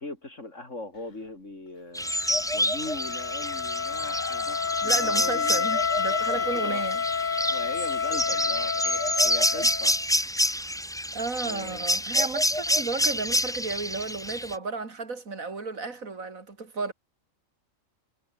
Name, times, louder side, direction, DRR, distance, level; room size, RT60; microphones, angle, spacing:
voice 1, 0.0-2.1 2.5-5.7 6.3-6.8 7.5-10.0 10.5-10.6 11.4-11.8, left 2 dB, 65° left, 4.9 m, -40 dB
sound 1, 1.9-14.5, equal, 5° left, 0.9 m, -28 dB
Wind instrument woodwind instrument, 2.0-10.0, left 6 dB, 40° left, 1.1 m, -29 dB
voice 2, 4.8-7.0 11.1-16.9, right 4 dB, 90° right, 3.3 m, -33 dB
omnidirectional pair, 1.4 m